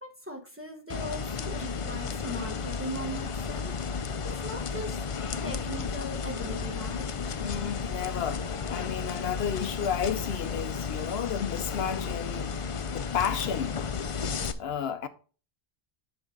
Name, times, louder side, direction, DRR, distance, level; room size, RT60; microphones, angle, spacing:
voice 1, 0.0-3.7 4.2-5.0 5.4-7.2, equal, 15° right, 1.0 m, -39 dB
sound 1, 0.9-14.5, left 5 dB, 45° left, 0.4 m, -33 dB
voice 2, 7.4-12.5 12.9-13.8 14.6-15.1, left 8 dB, 70° left, 0.8 m, -32 dB
7.7 x 5.4 x 3.8 m
omnidirectional pair, 1.1 m